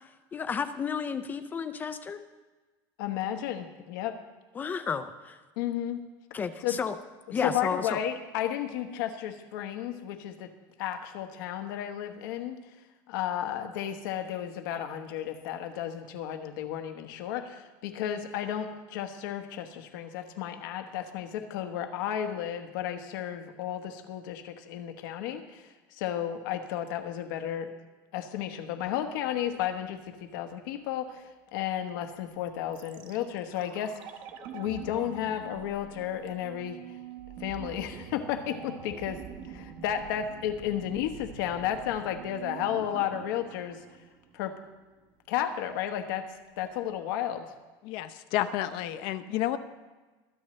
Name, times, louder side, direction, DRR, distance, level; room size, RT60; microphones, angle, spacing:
voice 1, 0.3-2.2 4.6-5.4 6.3-6.9 7.3-8.0, left 6 dB, 15° left, 11 dB, 0.4 m, -32 dB
voice 2, 3.0-4.2 5.6-6.0 6.6-6.8 7.3-10.5 10.8-12.6 13.1-27.7 28.1-34.1 34.5-36.8 37.4-39.2 39.5-43.8 44.3-44.6 45.3-46.2 46.6-47.5, left 10 dB, 80° left, 6 dB, 1.3 m, -33 dB
sound 1, 32.7-44.7 45.0-45.1, right 8 dB, 45° right, 1.0 m, -45 dB
voice 3, 47.8-49.6, left 13 dB, 50° left, 10 dB, 0.7 m, -30 dB
24.0 x 8.8 x 3.2 m, 1.2 s
cardioid pair, 175°, 11 cm